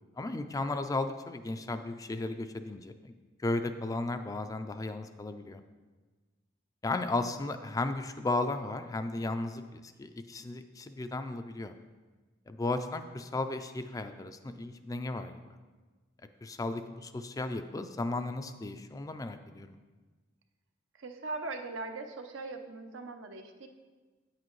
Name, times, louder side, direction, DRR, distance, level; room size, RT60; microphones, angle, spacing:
voice 1, 0.2-3.1 3.4-5.6 6.8-11.7 12.5-15.6 16.4-19.8, left 2 dB, 20° left, 9 dB, 0.3 m, -35 dB
voice 2, 20.9-23.7, right 3 dB, 80° right, 6 dB, 0.7 m, -40 dB
8.8 x 7.5 x 3.1 m, 1.3 s
head